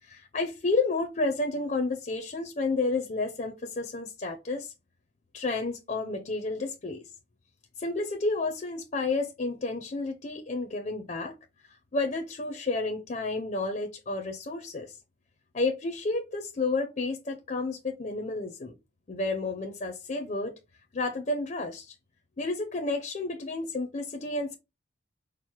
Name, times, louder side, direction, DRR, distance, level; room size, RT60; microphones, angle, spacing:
voice 1, 0.0-4.7 5.3-7.0 7.8-11.3 11.6-15.0 15.5-18.7 19.1-20.5 20.9-22.0 22.4-24.6, left 3 dB, 40° left, 0.5 m, -31 dB
4.4 x 2.0 x 4.5 m
head